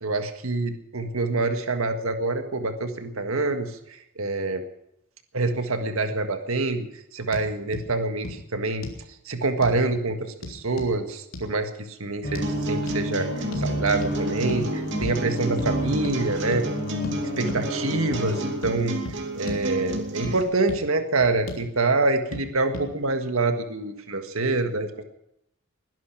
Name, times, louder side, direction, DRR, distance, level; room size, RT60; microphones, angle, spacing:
voice 1, 0.0-3.7 4.2-4.6 5.3-6.9 7.1-8.9 9.3-13.3 13.5-16.7 17.1-19.0 19.3-25.0, right 3 dB, 80° right, 7 dB, 1.7 m, -26 dB
sound 1, 7.3-7.5 7.7-7.9 8.2-8.4 8.8-9.0 9.6-9.8 10.4-10.9 11.3-11.5 12.3-12.5 12.9-13.0 13.5-13.7 14.0-14.2 14.5-14.7 15.0-15.2 15.6-15.7 16.0-16.2 16.5-16.6 17.0-17.2 17.5-17.6 18.1-18.2 18.6-18.8 19.0-19.2 19.5-19.6 19.9-20.4 20.7-20.8 21.2-21.6 22.3-22.4 22.7-22.9, left 2 dB, 75° left, 3.4 m, -36 dB
sound 2, 12.2-18.5, equal, 45° left, 4.0 m, -30 dB
sound 3, 12.4-20.4, right 2 dB, 60° right, 2.8 m, -32 dB
21.0 x 11.0 x 6.1 m, 0.79 s
head